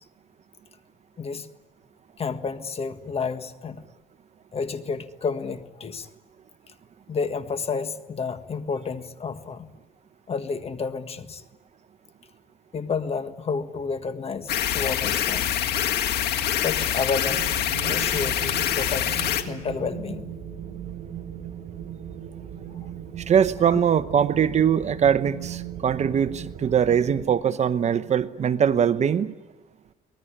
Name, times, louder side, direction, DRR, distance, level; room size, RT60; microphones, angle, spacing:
voice 1, 1.2-1.5 2.2-3.8 4.5-6.1 7.1-9.7 10.3-11.4 12.7-15.5 16.1-16.2 16.6-17.5 17.8-20.3 23.6-23.8, left 5 dB, 35° left, 9 dB, 1.6 m, -30 dB
sound 1, 14.5-19.4, left 10 dB, 75° left, 1.9 m, -25 dB
Wind, 17.2-27.2, right 9 dB, 55° right, 4.9 m, -38 dB
voice 2, 23.2-29.3, right 8 dB, 40° right, 13 dB, 0.9 m, -22 dB
24.0 x 19.0 x 9.9 m, 1.2 s
cardioid pair, 110°, 17 cm